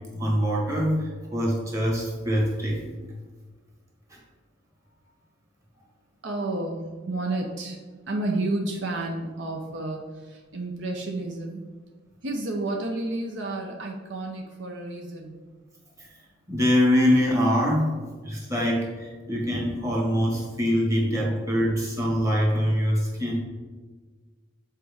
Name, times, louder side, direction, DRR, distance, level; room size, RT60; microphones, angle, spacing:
voice 1, 0.1-3.0 4.1-4.2 16.0-16.1 16.5-23.4, equal, 15° right, -3 dB, 1.5 m, -24 dB
voice 2, 6.2-7.8 8.1-11.6 12.2-15.4, right 2 dB, 65° right, 0 dB, 0.7 m, -31 dB
7.4 x 4.5 x 3.5 m, 1.4 s
head